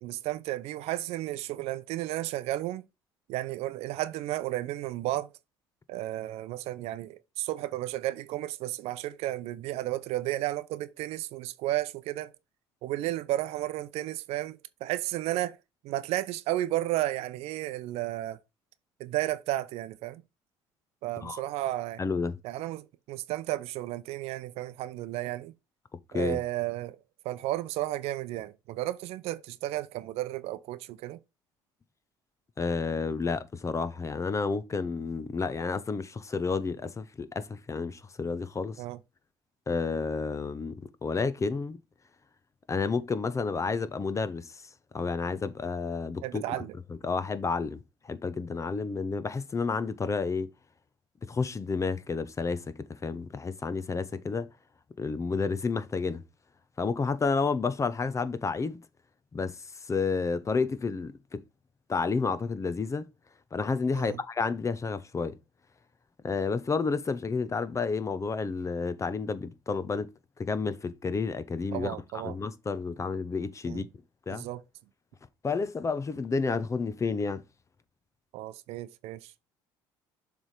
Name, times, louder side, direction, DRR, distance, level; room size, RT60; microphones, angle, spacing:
voice 1, 0.0-2.8 3.3-5.3 5.9-12.3 12.8-15.6 15.8-18.4 19.0-20.2 21.0-22.0 22.4-25.5 26.1-27.0 27.2-31.2 38.8-39.0 46.2-46.7 63.9-64.2 71.7-72.4 73.7-73.9 74.3-74.6 78.3-79.3, right 15 dB, 70° right, 0.7 m, -33 dB
voice 2, 22.0-22.4 26.1-26.4 32.6-38.8 39.7-41.8 42.7-44.6 44.9-46.5 47.0-50.5 51.2-54.5 55.0-56.2 56.8-58.8 59.3-61.4 61.9-63.1 63.5-65.4 66.2-70.1 70.4-73.8 74.3-74.5 75.4-77.4, left 4 dB, 30° left, 0.8 m, -30 dB
7.1 x 3.5 x 4.9 m
supercardioid pair, 70°, 11 cm